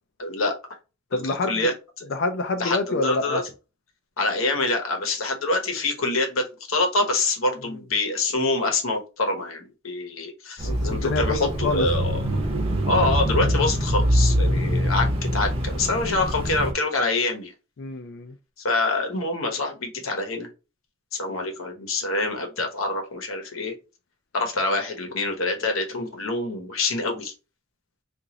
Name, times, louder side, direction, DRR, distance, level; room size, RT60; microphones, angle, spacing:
voice 1, 0.2-0.5 1.1-2.1 2.6-3.4 4.2-12.2 12.9-15.1 15.3-17.5 18.6-20.5 21.1-23.7 24.3-27.3, left 2 dB, 90° left, 1.0 m, -26 dB
voice 2, 1.1-1.7 2.1-3.4 10.6-11.9 14.5-14.8 17.8-18.3, left 3 dB, 60° left, 0.4 m, -27 dB
Bicycle / Mechanisms, 10.6-16.7, equal, 30° right, 0.7 m, -24 dB
2.9 x 2.6 x 3.7 m
head